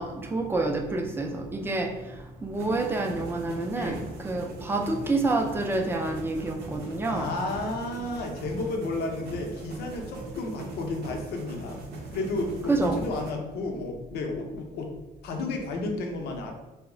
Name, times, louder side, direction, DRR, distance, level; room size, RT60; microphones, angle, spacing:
voice 1, 0.0-7.3 12.7-13.0, right 2 dB, 15° right, 2 dB, 0.4 m, -28 dB
sound 1, 2.5-13.3, right 3 dB, 75° right, 0.6 m, -41 dB
voice 2, 3.7-4.0 7.1-11.8 12.1-14.9 15.2-16.5, left 2 dB, 70° left, 2 dB, 0.6 m, -32 dB
2.2 x 2.0 x 3.7 m, 1.1 s
cardioid pair, 110°, 17 cm